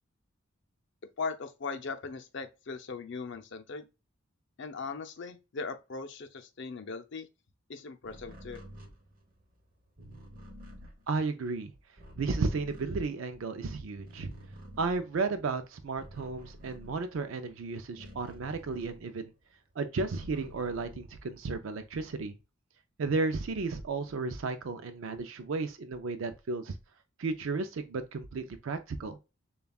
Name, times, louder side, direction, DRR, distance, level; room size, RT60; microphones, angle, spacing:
voice 1, 1.2-3.9 4.6-7.3 7.7-8.6, left 4 dB, 60° left, 0.6 m, -39 dB
sound 1, 8.0-13.6 13.9-19.4 19.7-21.5, equal, 45° right, 0.9 m, -51 dB
voice 2, 11.1-11.7 12.2-14.3 14.8-19.3 19.8-22.3 23.0-26.7 27.2-29.2, right 3 dB, 70° right, 0.4 m, -33 dB
6.8 x 2.3 x 2.3 m
head